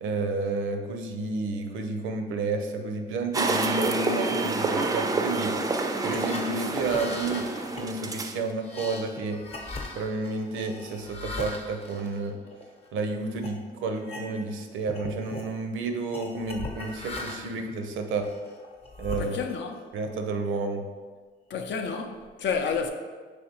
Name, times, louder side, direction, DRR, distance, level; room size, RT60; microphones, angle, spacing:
voice 1, 0.0-5.5 6.0-7.5 7.7-9.4 9.9-12.4 12.9-18.3 19.0-19.4 19.9-20.8, right 3 dB, 85° right, 0.5 m, -31 dB
sound 1, 3.3-8.4, right 3 dB, 20° right, 0.3 m, -28 dB
sound 2, 5.8-12.9 13.4-13.6 14.0-14.6 14.8-15.5 16.1-17.6 18.2-19.8, left 2 dB, 30° left, 0.7 m, -39 dB
voice 2, 19.2-19.8 21.5-22.9, left 6 dB, 65° left, 0.5 m, -30 dB
5.5 x 3.1 x 2.9 m
cardioid pair, 90°, 20 cm